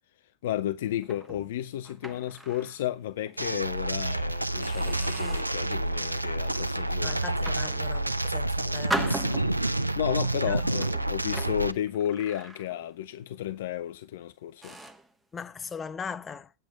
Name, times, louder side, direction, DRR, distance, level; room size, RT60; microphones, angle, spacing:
voice 1, 0.4-7.2 10.0-14.8, left 11 dB, 55° left, 0.5 m, -32 dB
sound 1, 1.0-2.8 3.3-3.4 4.0-4.2 4.6-5.7 6.2-6.6 7.2-8.3 8.9-9.9 10.7-13.0 13.3-13.6 14.1-14.2 14.6-15.1, right 1 dB, 5° right, 1.1 m, -38 dB
sound 2, 3.4-11.7, right 2 dB, 85° right, 0.5 m, -29 dB
voice 2, 7.0-9.4 10.5-10.6 15.3-16.5, left 6 dB, 15° left, 0.7 m, -39 dB
8.7 x 8.0 x 5.1 m
figure-of-eight pair, 90°, 0 cm